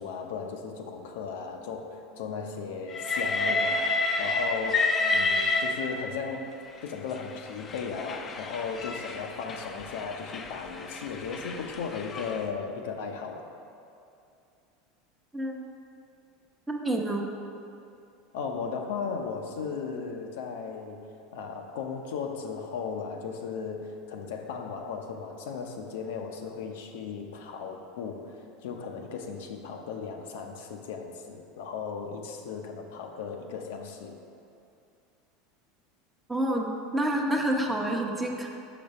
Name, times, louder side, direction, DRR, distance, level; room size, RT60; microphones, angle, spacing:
voice 1, 0.0-6.5 6.8-13.5 18.3-28.3 28.6-34.2, left 5 dB, 80° left, 3 dB, 0.7 m, -36 dB
Train, 2.9-6.3 7.2-12.4, left 3 dB, 30° left, 0.5 m, -30 dB
voice 2, 15.3-15.7 16.7-17.3 36.3-38.5, right 1 dB, 10° right, 0 dB, 0.8 m, -28 dB
5.9 x 5.1 x 5.3 m, 2.6 s
supercardioid pair, 120°, 0 cm